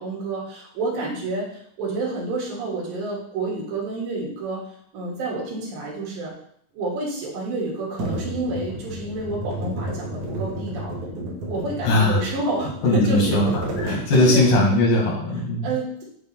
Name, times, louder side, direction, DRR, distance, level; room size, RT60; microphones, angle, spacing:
voice 1, 0.0-4.6 4.9-6.3 6.7-10.9 11.2-13.4 13.8-14.5 15.6-16.0, right 2 dB, 80° right, -4 dB, 3.6 m, -29 dB
sound 1, 8.0-14.7, right 1 dB, 65° right, 2.8 m, -31 dB
voice 2, 11.8-12.2 12.8-13.5 13.8-15.7, left 1 dB, 80° left, -1 dB, 3.4 m, -19 dB
8.7 x 3.2 x 4.4 m, 0.67 s
omnidirectional pair, 4.0 m